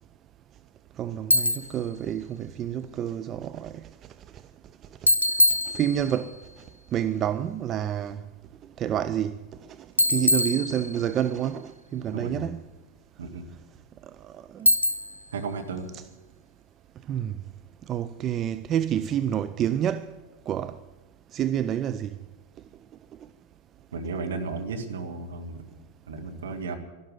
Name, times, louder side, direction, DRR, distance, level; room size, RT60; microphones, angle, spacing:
voice 1, 1.0-3.9 5.7-6.3 6.9-8.2 8.8-9.4 10.1-12.7 14.5-14.7 17.1-17.3 17.9-20.1 20.5-20.8 21.3-22.2, right 10 dB, 30° right, 0.4 m, -28 dB
Bicycle, 1.3-1.8 5.1-6.3 10.0-11.2 14.7-15.3, equal, 85° left, 0.6 m, -23 dB
voice 2, 12.1-12.5 13.2-13.5 15.3-15.9 23.9-25.6 26.1-26.8, right 4 dB, 65° right, 1.9 m, -34 dB
12.5 x 12.0 x 9.3 m
figure-of-eight pair, 90°, 0 cm